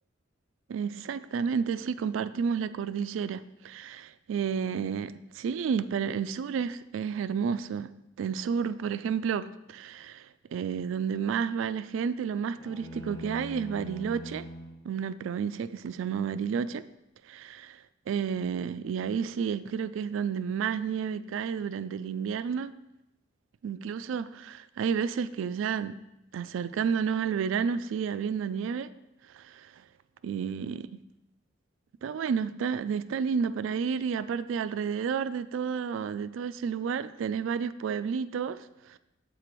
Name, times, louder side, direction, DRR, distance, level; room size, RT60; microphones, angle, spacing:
voice 1, 0.7-7.9 8.2-14.5 14.8-16.8 17.3-17.8 18.1-22.7 23.6-25.9 26.3-28.9 29.3-29.7 30.2-31.0 32.0-39.0, right 6 dB, 85° right, 0.3 m, -31 dB
sound 1, 12.6-14.8, equal, 15° left, 0.8 m, -42 dB
6.7 x 4.1 x 4.5 m
head